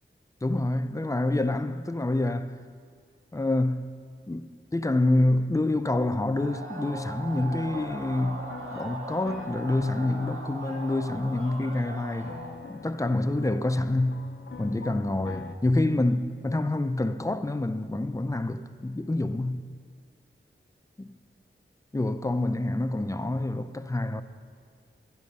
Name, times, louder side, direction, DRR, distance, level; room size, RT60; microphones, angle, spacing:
voice 1, 0.4-2.5 3.3-3.9 4.3-12.4 12.7-14.3 14.6-19.7 21.0-21.2 21.9-24.2, left 2 dB, 15° left, 0.5 m, -27 dB
sound 1, 6.3-12.5, right 2 dB, 80° right, 1.7 m, -39 dB
sound 2, 7.4-12.0 12.3-15.6, left 4 dB, 60° left, 0.6 m, -45 dB
11.5 x 11.0 x 5.4 m
wide cardioid pair, 55°, 21 cm